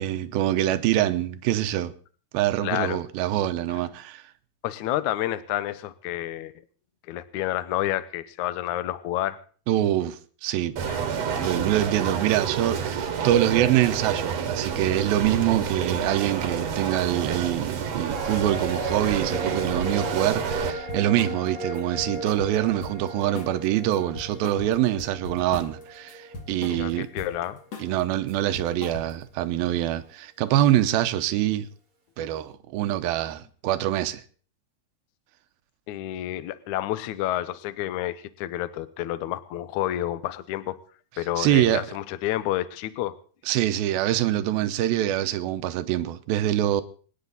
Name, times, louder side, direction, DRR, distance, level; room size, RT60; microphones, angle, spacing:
voice 1, 0.0-1.9 2.3-4.2 9.7-10.8 11.4-27.1 27.8-31.7 32.2-34.2 41.4-41.8 43.5-46.8, right 13 dB, 75° right, 2.6 m, -25 dB
voice 2, 2.6-3.0 3.7-3.8 4.6-6.5 7.1-9.4 10.9-11.3 26.7-27.6 35.9-40.8 41.2-43.1, left 14 dB, 80° left, 1.7 m, -29 dB
sound 1, 10.8-20.7, right 7 dB, 60° right, 2.0 m, -29 dB
sound 2, 18.1-27.6 27.9-28.0, right 2 dB, 40° right, 1.4 m, -36 dB
sound 3, 20.6-21.4 21.7-23.1 23.4-23.6 23.9-25.8 26.1-27.4 27.7-28.0 28.3-29.3, left 3 dB, 45° left, 2.8 m, -39 dB
27.0 x 9.6 x 4.0 m
omnidirectional pair, 4.6 m